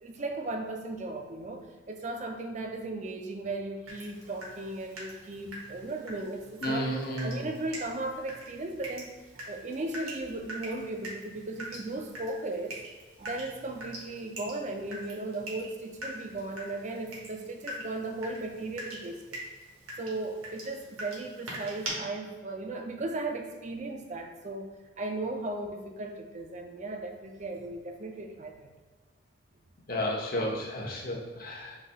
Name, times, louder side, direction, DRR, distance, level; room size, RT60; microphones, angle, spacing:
voice 1, 0.0-9.1 9.5-12.8 13.2-19.2 20.0-24.7 25.0-28.7, right 2 dB, 35° right, 4 dB, 0.4 m, -36 dB
Water tap faucet / Drip, 3.9-21.9, right 1 dB, 90° right, 1.2 m, -44 dB
voice 2, 6.6-7.4 29.9-31.8, equal, 45° left, -2 dB, 0.8 m, -32 dB
4.0 x 2.7 x 4.1 m, 1.3 s
head